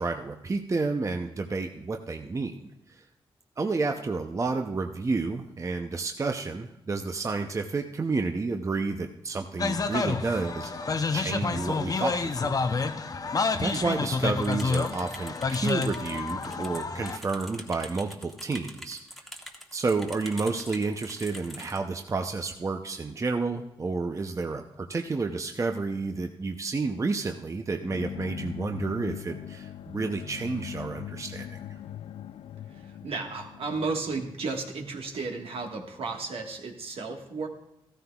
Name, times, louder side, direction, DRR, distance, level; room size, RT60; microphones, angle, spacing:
voice 1, 0.0-3.0 3.6-12.9 13.6-19.0 19.7-31.6, right 3 dB, 30° right, 5 dB, 0.6 m, -30 dB
sound 1, 9.6-17.2, left 4 dB, 40° left, 0.6 m, -29 dB
sound 2, 14.4-21.8, equal, ahead, 1.2 m, -44 dB
sound 3, 27.8-35.6, left 10 dB, 85° left, 0.4 m, -41 dB
voice 2, 32.7-37.5, right 4 dB, 70° right, 2 dB, 1.5 m, -34 dB
14.5 x 13.5 x 2.3 m, 0.83 s
cardioid pair, 80°, 10 cm